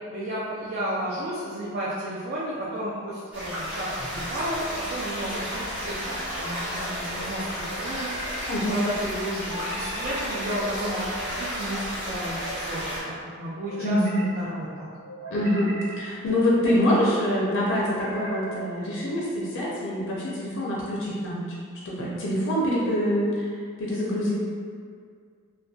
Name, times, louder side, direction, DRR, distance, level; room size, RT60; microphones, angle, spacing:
voice 1, 0.1-14.0 14.4-14.9, right 1 dB, 45° right, -7 dB, 0.3 m, -33 dB
sound 1, 3.3-13.0, equal, 5° right, 0.8 m, -32 dB
sound 2, 4.0-4.6 6.0-6.8 7.6-8.4 9.5-10.2 10.9-11.5 12.1-13.0 13.6-14.3 15.0-15.9 16.5-17.0 17.8-18.6, right 2 dB, 85° right, 1.3 m, -39 dB
voice 2, 8.5-8.9 13.7-14.2 15.3-21.6 21.8-23.5 23.8-24.3, left 1 dB, 60° left, -5 dB, 0.4 m, -25 dB
2.6 x 2.1 x 2.3 m, 2.1 s
head